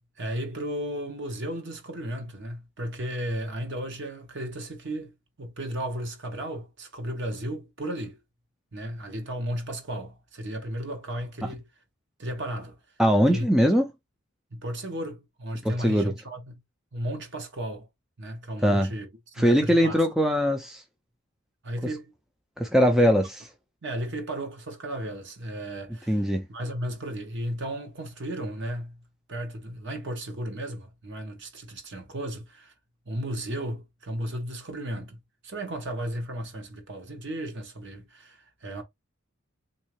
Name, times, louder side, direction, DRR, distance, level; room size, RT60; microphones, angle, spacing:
voice 1, 0.2-8.2 8.7-11.6 12.2-12.8 13.3-13.5 14.5-16.6 16.9-17.9 18.2-19.1 19.4-20.0 21.6-22.1 23.0-23.2 23.8-26.2 26.5-29.0 29.3-32.7 33.1-38.8, right 1 dB, 55° right, 1.0 m, -34 dB
voice 2, 13.0-13.9 15.6-16.1 18.6-18.9 19.4-20.8 22.6-23.3 26.1-26.5, equal, ahead, 0.3 m, -21 dB
3.6 x 2.7 x 3.0 m
head